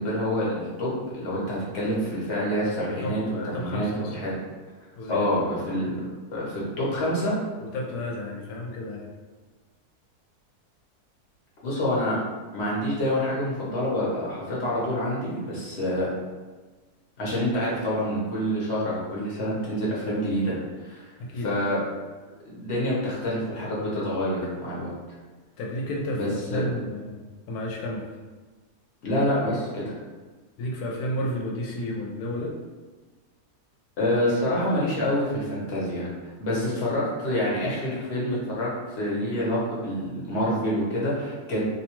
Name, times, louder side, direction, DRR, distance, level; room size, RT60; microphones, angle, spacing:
voice 1, 0.0-3.2 3.5-4.4 5.1-6.0 6.3-7.4 11.6-12.2 12.5-16.1 17.2-21.1 21.4-21.8 22.4-24.9 26.1-26.6 29.0-29.9 34.0-36.1 36.4-41.6, equal, 50° left, -6 dB, 0.9 m, -27 dB
voice 2, 2.8-4.2 5.0-5.3 7.6-9.1 21.2-21.5 25.6-28.1 30.6-32.6, left 1 dB, 75° left, -1 dB, 1.1 m, -32 dB
2.7 x 2.2 x 2.9 m, 1.3 s
omnidirectional pair, 1.6 m